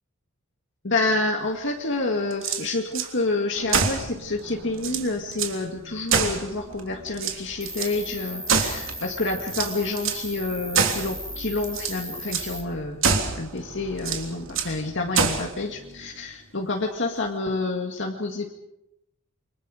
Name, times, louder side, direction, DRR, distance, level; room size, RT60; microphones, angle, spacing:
voice 1, 0.8-13.0 13.4-18.5, left 2 dB, 55° left, 1 dB, 2.1 m, -28 dB
Cock and Fire, 2.3-3.1 3.7-4.1 4.5-4.6 4.8-5.6 6.1-6.8 7.1-7.9 8.5-9.0 9.5-10.3 10.7-11.1 11.6-12.0 12.3-12.5 13.0-13.4 14.0-14.8 15.1-15.5, right 5 dB, 65° right, 3.3 m, -25 dB
sound 1, 3.5-16.6, right 1 dB, 80° right, 3.5 m, -45 dB
Cricket, 7.6-12.6, equal, ahead, 2.7 m, -37 dB
29.5 x 25.0 x 5.1 m, 0.84 s
head